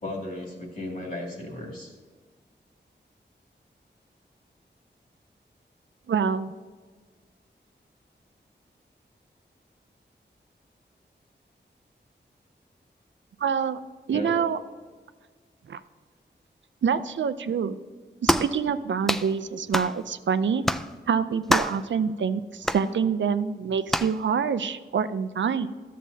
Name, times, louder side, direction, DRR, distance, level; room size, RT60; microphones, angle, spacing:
voice 1, 0.0-1.9 14.1-14.3, left 1 dB, 50° left, -1 dB, 2.1 m, -35 dB
voice 2, 6.1-6.5 13.4-13.8 14.1-14.6 15.7-15.8 16.8-17.8 18.2-20.6 21.1-25.7, right 6 dB, 80° right, 13 dB, 0.4 m, -26 dB
sound 1, 18.3-18.5 19.1-19.3 19.7-19.9 20.6-20.9 21.5-21.8 22.6-22.8 23.9-24.1, equal, ahead, 0.3 m, -24 dB
12.5 x 7.4 x 2.7 m, 1.5 s
wide cardioid pair, 105°, 19 cm